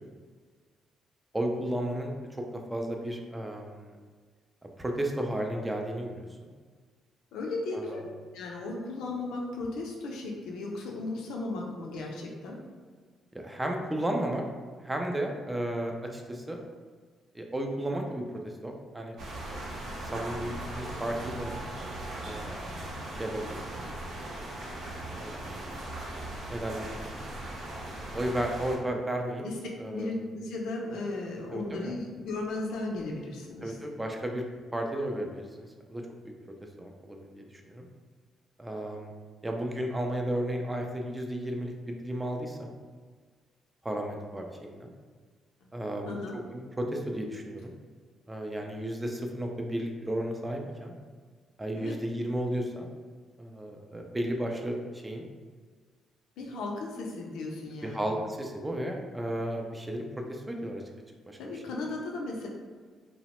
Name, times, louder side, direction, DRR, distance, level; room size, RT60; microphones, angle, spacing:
voice 1, 1.3-2.4 2.7-4.0 4.8-6.3 7.7-8.0 13.3-14.4 14.8-16.6 17.3-19.2 20.0-21.5 22.2-22.8 23.2-23.8 24.7-25.6 26.5-27.1 28.1-29.4 29.8-30.1 31.5-31.9 33.6-34.4 34.7-36.3 36.8-37.9 38.6-39.1 39.4-42.7 43.8-44.9 45.7-46.1 46.5-47.7 48.3-50.9 51.6-52.9 53.4-55.2 57.8-60.8 61.3-61.6, right 1 dB, 15° right, 2 dB, 0.4 m, -34 dB
voice 2, 7.3-8.1 8.3-12.6 29.4-29.5 29.9-33.8 45.6-45.7 46.0-46.4 51.7-52.0 56.4-58.0 61.4-62.5, left 2 dB, 85° left, -1 dB, 0.4 m, -36 dB
sound 1, 19.2-28.8, right 1 dB, 65° right, 0.6 m, -39 dB
2.8 x 2.0 x 2.9 m, 1.5 s
cardioid pair, 90°, 0 cm